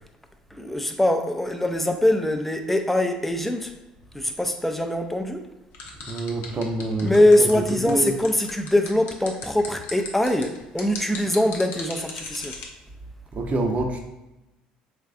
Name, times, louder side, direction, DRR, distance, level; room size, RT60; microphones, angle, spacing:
voice 1, 0.5-3.7 4.1-5.4 7.0-12.6, left 1 dB, 5° left, 0.5 m, -22 dB
sound 1, 5.7-12.7, left 5 dB, 65° left, 0.7 m, -37 dB
voice 2, 6.1-8.2 13.3-14.0, right 2 dB, 40° right, 0.7 m, -27 dB
3.4 x 3.1 x 2.4 m
hypercardioid pair, 65°, 4 cm